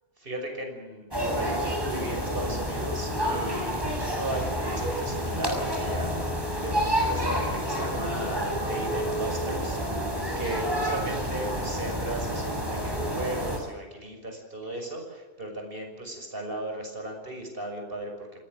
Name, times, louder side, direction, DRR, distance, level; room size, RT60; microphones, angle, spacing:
voice 1, 0.2-6.1 6.5-9.8 10.4-18.3, right 1 dB, 55° right, 3 dB, 6.3 m, -36 dB
sound 1, 1.1-13.6, equal, 20° right, 6.5 m, -29 dB
28.5 x 19.0 x 7.8 m, 1.1 s
omnidirectional pair, 1.1 m